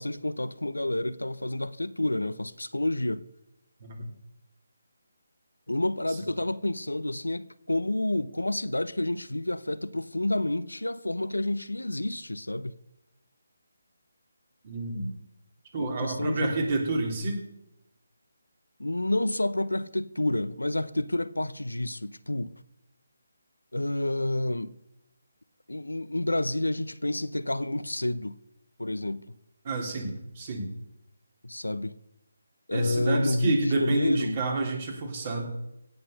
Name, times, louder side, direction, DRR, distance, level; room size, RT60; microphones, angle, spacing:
voice 1, 0.0-3.2 5.7-12.8 15.8-16.6 18.8-22.5 23.7-24.7 25.7-28.4 28.8-29.3 31.4-32.0 32.7-34.4, left 1 dB, 90° left, 0.7 m, -29 dB
voice 2, 14.6-15.1 15.7-17.5 29.6-30.7 32.7-35.5, right 2 dB, 40° right, 3.3 m, -29 dB
17.0 x 5.8 x 6.6 m
figure-of-eight pair, 155°, 0 cm